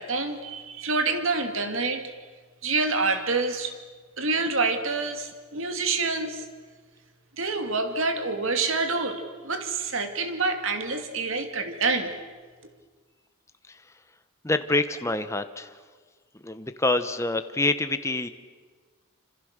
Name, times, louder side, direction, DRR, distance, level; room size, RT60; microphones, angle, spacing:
voice 1, 0.0-2.1 2.6-3.8 4.2-6.4 7.4-12.1, right 3 dB, 65° right, 7 dB, 2.4 m, -27 dB
voice 2, 14.4-15.8 16.4-18.3, left 2 dB, 15° left, 9 dB, 1.0 m, -26 dB
26.5 x 26.5 x 6.7 m, 1.5 s
head